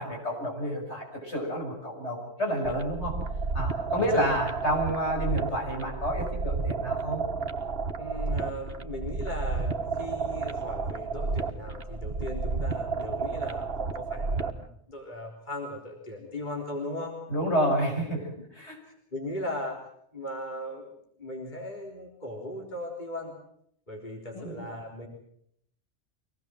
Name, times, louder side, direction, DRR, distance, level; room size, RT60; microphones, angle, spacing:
voice 1, 0.0-3.1 3.5-7.2 17.3-18.8 24.3-24.7, equal, 75° left, 0 dB, 7.0 m, -29 dB
sound 1, 2.6-14.7, right 4 dB, 55° right, 1.5 m, -31 dB
voice 2, 8.0-17.2 19.1-19.8 20.1-23.3 23.9-25.1, left 1 dB, 40° left, -1 dB, 3.9 m, -38 dB
24.5 x 19.0 x 7.6 m, 0.72 s
omnidirectional pair, 1.2 m